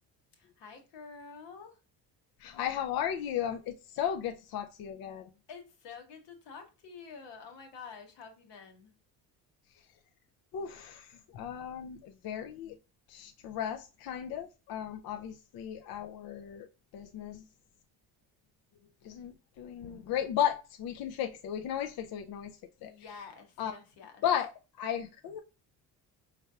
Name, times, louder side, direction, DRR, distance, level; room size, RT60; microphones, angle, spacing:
voice 1, 0.3-1.8 5.5-8.9 22.8-24.2, left 5 dB, 75° left, 1.2 m, -49 dB
voice 2, 2.4-5.3 10.5-12.8 13.1-16.7 16.9-17.4 19.0-22.9 23.6-23.7 24.2-25.4, left 9 dB, 55° left, 0.5 m, -35 dB
4.3 x 3.3 x 2.3 m
supercardioid pair, 85°, 44 cm